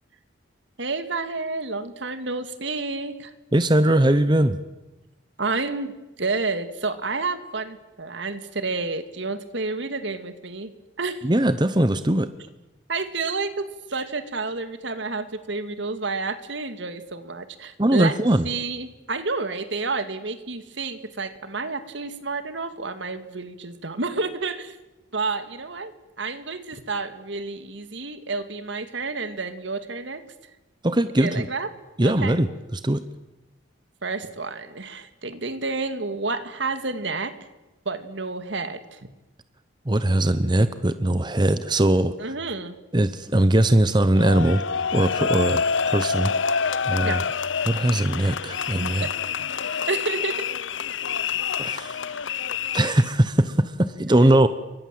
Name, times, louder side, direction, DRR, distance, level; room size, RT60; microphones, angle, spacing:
voice 1, 0.8-3.3 5.4-5.9 6.2-10.7 11.0-11.3 12.9-18.1 18.4-24.8 25.1-30.2 31.2-31.7 32.0-32.4 34.0-37.3 37.9-39.0 42.2-42.8 47.0-47.2 49.0-49.1 49.9-50.5, right 3 dB, 70° right, 10 dB, 2.2 m, -30 dB
voice 2, 3.5-4.6 11.2-12.3 17.8-18.5 30.8-31.5 32.0-33.0 39.9-42.3 42.9-44.6 44.9-46.3 46.9-47.2 47.7-49.1 49.6-49.8 51.6-52.0 52.7-54.5, right 1 dB, 25° right, 12 dB, 0.9 m, -20 dB
sound 1, 44.2-53.1, left 6 dB, 80° left, 0.9 m, -27 dB
29.0 x 24.0 x 7.7 m, 1.0 s
head